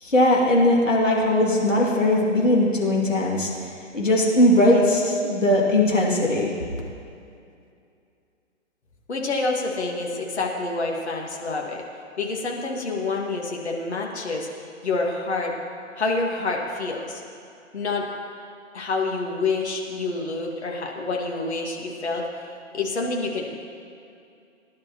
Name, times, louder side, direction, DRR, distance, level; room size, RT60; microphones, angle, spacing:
voice 1, 0.0-3.5 3.9-6.5, left 1 dB, 80° left, -3 dB, 2.7 m, -19 dB
voice 2, 9.1-11.8 12.2-14.5 14.8-15.6 16.0-17.2 17.7-18.1 18.7-22.5 22.7-23.6, left 3 dB, 60° left, 0 dB, 2.0 m, -27 dB
19.5 x 11.0 x 3.0 m, 2.5 s
figure-of-eight pair, 125°, 38 cm